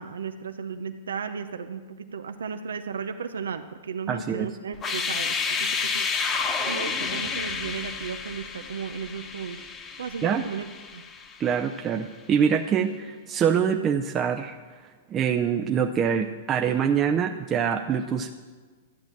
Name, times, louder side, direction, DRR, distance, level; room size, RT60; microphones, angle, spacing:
voice 1, 0.0-9.6 10.0-10.7 10.9-11.0, right 6 dB, 85° right, 8 dB, 0.7 m, -35 dB
voice 2, 4.1-4.6 10.2-10.4 11.4-14.5 15.1-18.3, right 7 dB, 30° right, 4 dB, 0.6 m, -25 dB
sound 1, 4.7-11.6, left 5 dB, 25° left, 1.2 m, -30 dB
13.0 x 9.1 x 7.4 m, 1.4 s
hypercardioid pair, 115°, 0 cm